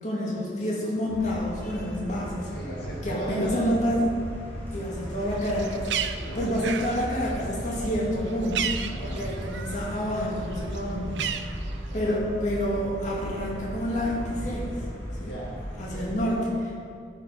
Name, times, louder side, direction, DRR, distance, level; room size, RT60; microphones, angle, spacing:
voice 1, 0.0-2.5 3.0-4.0 4.7-5.9 6.3-8.7 9.0-11.6 11.9-14.8 15.2-15.3 15.8-16.7, equal, 40° left, -5 dB, 2.5 m, -28 dB
sound 1, 1.1-16.1, equal, 10° left, 2.7 m, -36 dB
voice 2, 2.4-3.8 6.1-6.6 8.9-9.3 15.1-16.1, right 1 dB, 70° left, -5 dB, 1.7 m, -37 dB
Bird, 5.3-9.9 10.2-12.2, right 8 dB, 90° right, 0.5 m, -34 dB
13.5 x 5.7 x 5.4 m, 2.4 s
head